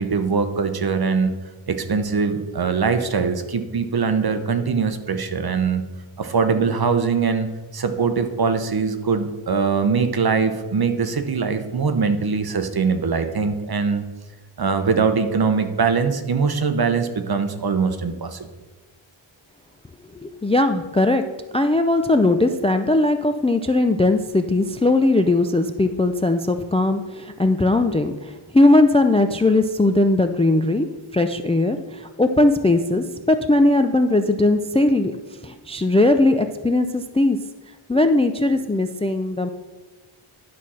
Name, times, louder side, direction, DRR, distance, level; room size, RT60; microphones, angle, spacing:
voice 1, 0.0-1.3 1.7-5.8 6.2-7.5 7.7-14.0 14.6-18.5, right 5 dB, 45° right, 8 dB, 0.9 m, -22 dB
voice 2, 20.1-21.2 21.5-30.9 31.1-31.8 32.2-35.1 35.4-37.4 37.9-39.5, left 2 dB, 15° left, 8 dB, 0.3 m, -19 dB
11.0 x 4.3 x 6.2 m, 1.2 s
wide cardioid pair, 110°, 50 cm